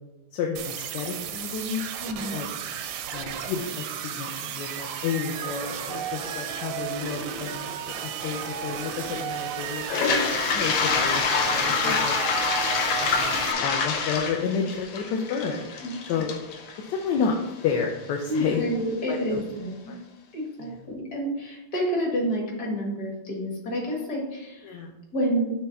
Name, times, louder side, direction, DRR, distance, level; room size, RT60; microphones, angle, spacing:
voice 1, 0.3-1.8 2.3-2.5 3.1-9.8 10.5-12.1 13.0-15.6 16.1-16.3 16.9-17.3 17.6-18.6 19.1-19.4 19.9-20.0 20.6-20.8 24.6-24.9, left 6 dB, 70° left, 1 dB, 1.2 m, -30 dB
sound 1, 0.6-13.5, right 8 dB, 80° right, 1.3 m, -34 dB
voice 2, 2.0-2.4 11.8-12.0 15.8-15.9 18.3-20.0 20.3-24.8 25.1-25.5, equal, 50° left, -1 dB, 2.0 m, -29 dB
Toilet flush, 9.8-17.7, left 5 dB, 90° left, 1.7 m, -26 dB
6.7 x 3.2 x 5.7 m, 0.96 s
omnidirectional pair, 2.1 m